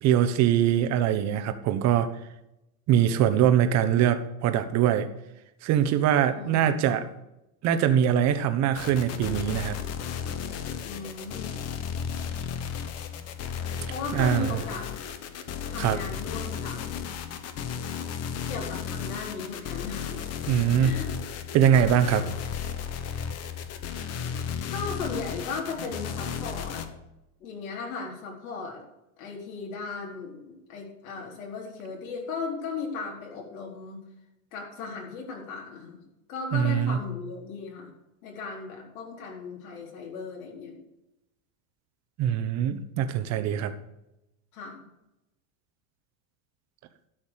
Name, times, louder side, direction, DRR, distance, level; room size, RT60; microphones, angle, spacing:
voice 1, 0.0-2.1 2.9-5.1 5.6-7.1 7.6-9.8 14.1-14.6 15.8-16.0 20.5-20.9 21.5-22.3 36.5-37.0 42.2-43.7, right 9 dB, 40° right, 10 dB, 1.2 m, -23 dB
voice 2, 6.3-7.0 10.8-11.6 13.9-14.9 15.7-16.9 18.5-20.2 20.8-21.1 21.7-21.9 24.7-26.8 27.4-28.8 29.2-34.0 34.5-36.0 36.3-37.9 38.2-40.8 44.5-44.8, left 4 dB, 80° left, -2 dB, 4.3 m, -37 dB
sound 1, 8.7-26.9, left 7 dB, 35° left, 1.3 m, -34 dB
12.5 x 6.4 x 6.5 m, 0.90 s
supercardioid pair, 145°, 42 cm